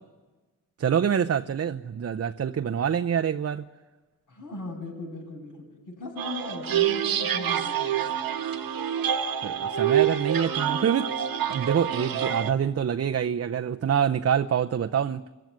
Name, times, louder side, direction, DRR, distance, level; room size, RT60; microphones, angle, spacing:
voice 1, 0.8-3.7 9.4-11.1 11.5-15.2, right 8 dB, 45° right, 0.7 m, -26 dB
voice 2, 4.3-8.0, left 2 dB, 70° left, 8.0 m, -38 dB
sound 1, 6.2-12.5, right 9 dB, 85° right, 1.5 m, -27 dB
28.0 x 15.5 x 9.3 m
cardioid pair, 80°, 34 cm